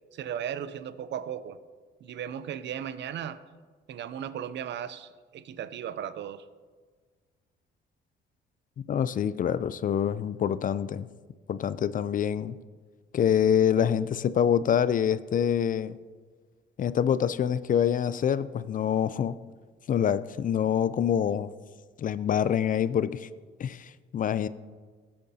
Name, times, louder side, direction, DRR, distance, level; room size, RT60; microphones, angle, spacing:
voice 1, 0.1-1.6 2.0-3.4 3.9-6.5, right 9 dB, 65° right, 14 dB, 0.5 m, -36 dB
voice 2, 8.9-11.1 11.5-12.6 13.1-16.0 16.8-19.4 19.9-21.5 22.0-23.3 23.6-24.5, left 9 dB, 45° left, 16 dB, 0.4 m, -26 dB
16.0 x 8.6 x 2.8 m, 1.5 s
cardioid pair, 90°, 20 cm